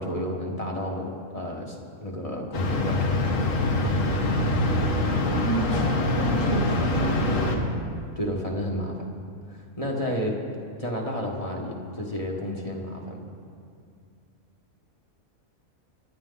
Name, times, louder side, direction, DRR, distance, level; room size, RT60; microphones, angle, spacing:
voice 1, 0.0-4.1 8.1-9.1 9.5-10.4 10.8-13.3, equal, 25° left, -1 dB, 1.5 m, -31 dB
sound 1, 2.5-7.6, left 2 dB, 70° left, 1.9 m, -24 dB
voice 2, 5.4-5.8 6.2-7.6, right 3 dB, 60° right, 2 dB, 1.5 m, -32 dB
25.0 x 10.5 x 4.0 m, 2.3 s
omnidirectional pair, 1.4 m